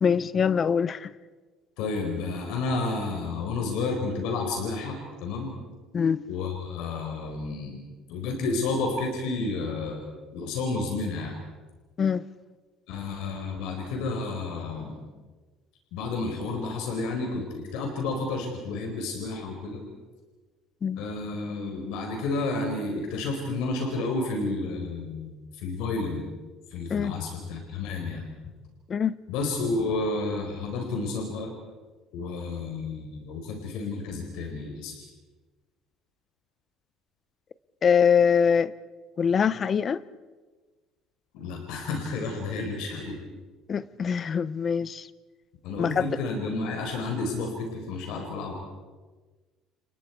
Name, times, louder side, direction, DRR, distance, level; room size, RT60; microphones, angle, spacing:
voice 1, 0.0-1.1 5.9-6.3 12.0-12.2 20.8-21.0 26.9-27.1 28.9-29.2 37.8-38.7 39.2-40.0 43.7-45.1 45.8-46.1, left 7 dB, 30° left, 0.6 m, -23 dB
voice 2, 1.8-5.6 6.3-7.8 8.1-10.1 10.3-11.3 12.9-15.0 15.9-19.8 21.0-26.2 26.7-28.2 29.3-31.5 32.1-34.9 41.3-43.2 45.6-48.5, left 3 dB, 80° left, 4.5 m, -31 dB
30.0 x 28.5 x 4.7 m
cardioid pair, 165°, 0 cm